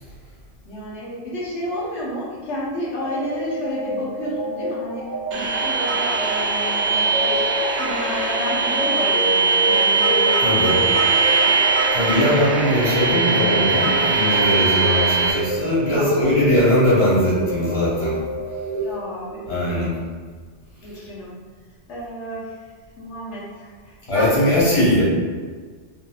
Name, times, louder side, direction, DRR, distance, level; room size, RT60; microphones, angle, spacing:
voice 1, 0.6-5.0 5.3-7.5 7.8-11.6 12.1-12.3 12.6-12.9 15.8-16.3 18.8-19.9 20.8-21.4 21.9-22.6 23.0-25.0, equal, 70° left, -8 dB, 1.1 m, -31 dB
sound 1, 3.0-19.6, right 1 dB, 50° left, 0.7 m, -29 dB
sound 2, 5.3-15.3, right 4 dB, 65° right, 0.4 m, -20 dB
voice 2, 10.4-10.7 11.9-18.2 19.5-19.9 20.9-21.0 24.1-25.0, left 1 dB, 30° left, -9 dB, 1.0 m, -20 dB
3.4 x 2.5 x 2.3 m, 1.5 s
omnidirectional pair, 1.3 m